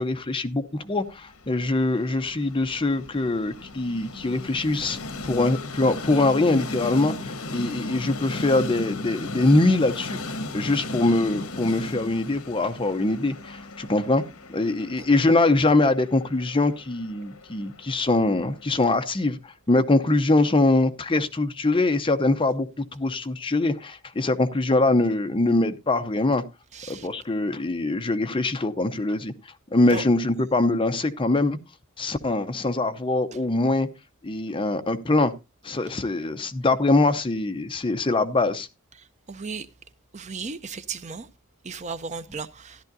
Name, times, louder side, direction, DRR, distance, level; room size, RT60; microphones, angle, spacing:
voice 1, 0.0-14.2 14.5-26.4 26.9-29.3 29.7-31.6 32.0-33.9 34.2-35.3 35.6-38.7, left 2 dB, 25° left, 0.7 m, -23 dB
Train, 1.1-19.2, left 2 dB, 80° left, 1.1 m, -37 dB
voice 2, 26.7-27.1 29.9-30.0 39.3-39.7 40.1-41.3 41.6-42.8, right 4 dB, 35° right, 0.5 m, -35 dB
13.5 x 11.5 x 2.6 m
head